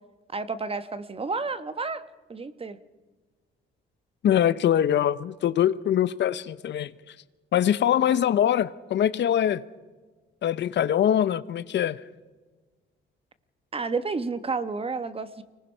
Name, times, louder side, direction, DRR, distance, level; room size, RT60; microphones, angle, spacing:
voice 1, 0.3-2.0 2.3-2.8 13.7-15.4, right 4 dB, 30° right, 1.2 m, -31 dB
voice 2, 4.2-7.1 7.5-9.6 10.4-12.0, left 10 dB, 65° left, 0.8 m, -23 dB
25.0 x 19.0 x 5.6 m
cardioid pair, 90°, 20 cm